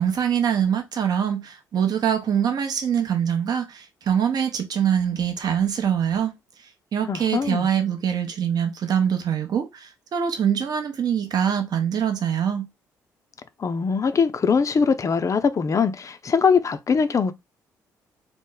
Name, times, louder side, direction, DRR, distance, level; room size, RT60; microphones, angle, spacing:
voice 1, 0.0-6.3 6.6-12.7, right 8 dB, 45° right, 0.7 m, -24 dB
voice 2, 7.1-7.7 13.6-17.3, left 5 dB, 35° left, 0.5 m, -22 dB
3.0 x 2.0 x 3.8 m
figure-of-eight pair, 45°, 9 cm